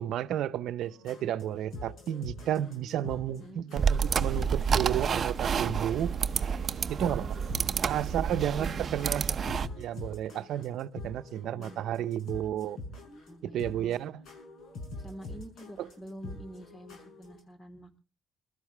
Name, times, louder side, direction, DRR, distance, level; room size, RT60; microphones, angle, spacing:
voice 1, 0.0-6.1 6.9-7.2 7.8-9.3 9.8-12.8 13.5-14.2 15.8-15.9, right 11 dB, 80° right, 0.7 m, -32 dB
sound 1, 0.8-17.4, left 2 dB, 75° left, 6.0 m, -45 dB
sound 2, 3.8-9.7, right 6 dB, 50° right, 0.7 m, -29 dB
voice 2, 7.0-9.3 11.3-11.8 13.3-14.0 15.0-18.0, equal, 30° left, 3.5 m, -48 dB
22.5 x 13.0 x 3.3 m
cardioid pair, 90°, 0 cm